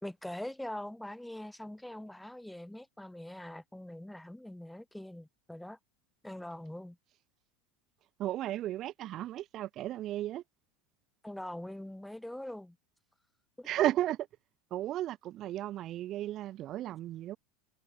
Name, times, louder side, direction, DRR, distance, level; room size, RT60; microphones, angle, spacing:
voice 1, 0.0-5.8 6.2-7.0 11.2-12.8 13.6-13.7, left 1 dB, 5° left, 1.2 m, -43 dB
voice 2, 8.2-10.4 13.6-14.2 14.7-17.4, right 13 dB, 45° right, 0.4 m, -34 dB
hypercardioid pair, 80°, 0 cm